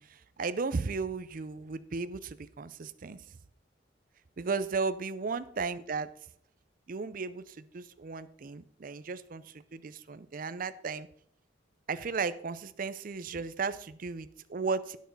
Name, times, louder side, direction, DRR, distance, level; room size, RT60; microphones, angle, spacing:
voice 1, 0.0-3.2 4.4-6.1 6.9-11.1 11.9-15.0, right 4 dB, 45° right, 13 dB, 0.5 m, -35 dB
9.4 x 6.3 x 5.2 m, 0.64 s
head